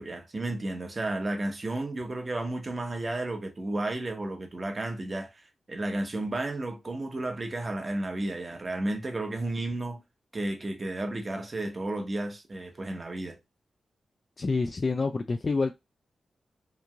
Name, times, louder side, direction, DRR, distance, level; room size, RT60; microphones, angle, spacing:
voice 1, 0.0-5.3 5.7-10.0 10.3-13.4, right 2 dB, 35° right, 0.8 m, -32 dB
voice 2, 14.4-15.7, left 3 dB, 45° left, 0.3 m, -27 dB
3.0 x 2.6 x 2.2 m
cardioid pair, 70°, 0 cm